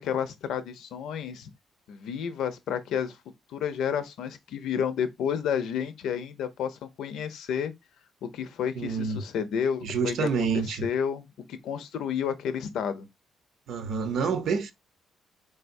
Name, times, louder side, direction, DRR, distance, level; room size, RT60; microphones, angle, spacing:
voice 1, 0.0-1.5 1.9-3.2 3.5-7.7 8.2-13.1, left 8 dB, 80° left, 0.6 m, -31 dB
voice 2, 8.8-9.2 9.8-10.8 13.7-14.7, right 5 dB, 75° right, 0.7 m, -28 dB
3.9 x 3.4 x 2.6 m
cardioid pair, 90°, 0 cm